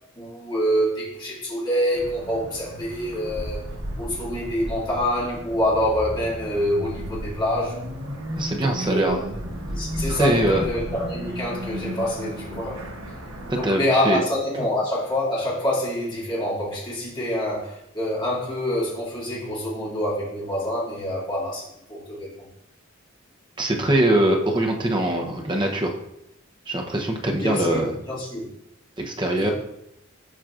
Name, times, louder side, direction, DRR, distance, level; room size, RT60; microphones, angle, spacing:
voice 1, 0.2-3.6 4.0-7.8 8.6-9.1 9.7-12.8 13.6-22.5 27.2-28.5 29.4-29.5, equal, 25° left, -8 dB, 2.3 m, -26 dB
Costal Highway Ambiance, 1.9-13.7, equal, 85° right, 1.3 m, -34 dB
voice 2, 8.4-9.4 10.1-10.6 13.5-14.2 14.6-14.7 23.6-26.0 26.7-27.9 29.0-29.5, right 1 dB, 20° right, 2 dB, 0.8 m, -23 dB
7.4 x 5.7 x 2.5 m, 0.80 s
head